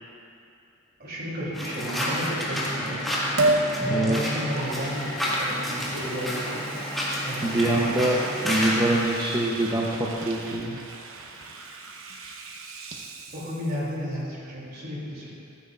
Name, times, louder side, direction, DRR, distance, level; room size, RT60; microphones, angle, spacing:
voice 1, 1.0-3.1 3.8-6.6 7.2-7.8 13.3-15.3, equal, 50° right, -5 dB, 3.0 m, -32 dB
sound 1, 1.5-9.0, equal, ahead, 1.9 m, -30 dB
Liquid, 3.4-3.7 4.3-13.9 14.3-14.4, right 2 dB, 85° right, 0.9 m, -33 dB
voice 2, 3.8-4.2 7.4-10.8, right 1 dB, 20° right, -5 dB, 0.8 m, -25 dB
14.5 x 13.0 x 2.5 m, 2.6 s
head